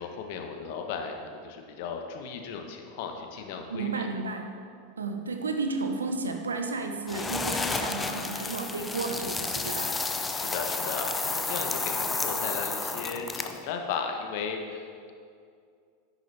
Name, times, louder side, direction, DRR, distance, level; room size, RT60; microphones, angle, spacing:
voice 1, 0.0-4.1 10.0-15.1, left 6 dB, 55° left, 4 dB, 1.2 m, -36 dB
voice 2, 3.7-4.4 5.0-10.0, right 3 dB, 80° right, 5 dB, 0.9 m, -32 dB
sound 1, 7.1-13.6, left 3 dB, 15° left, 0.6 m, -31 dB
10.0 x 9.9 x 3.4 m, 2.3 s
figure-of-eight pair, 90°, 0 cm